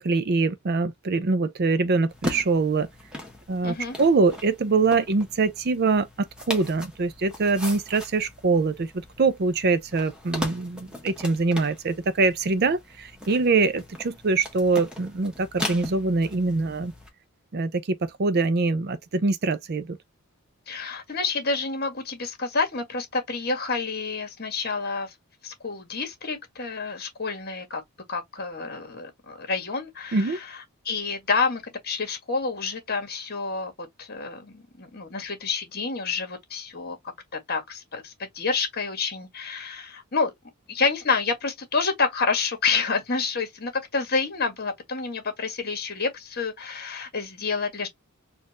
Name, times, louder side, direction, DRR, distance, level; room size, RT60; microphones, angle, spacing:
voice 1, 0.0-2.9 3.5-8.9 9.2-16.9 17.5-20.0 30.1-30.4, right 3 dB, 45° right, 0.5 m, -24 dB
sound 1, 2.1-17.1, left 1 dB, 5° right, 1.2 m, -39 dB
voice 2, 3.6-4.0 20.7-25.1 25.4-27.8 28.1-37.0 37.3-40.3 40.7-47.9, left 4 dB, 45° left, 1.6 m, -28 dB
4.3 x 2.5 x 3.0 m
head